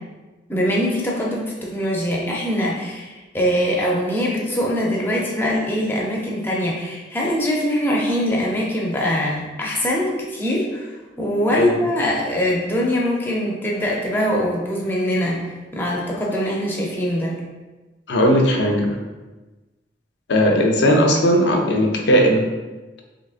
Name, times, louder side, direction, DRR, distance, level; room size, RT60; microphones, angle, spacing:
voice 1, 0.5-10.9 11.2-15.4 15.7-17.4, equal, 10° left, -4 dB, 0.5 m, -22 dB
voice 2, 18.1-18.9 20.3-22.5, equal, 70° left, 2 dB, 0.5 m, -17 dB
3.7 x 2.8 x 2.4 m, 1.2 s
head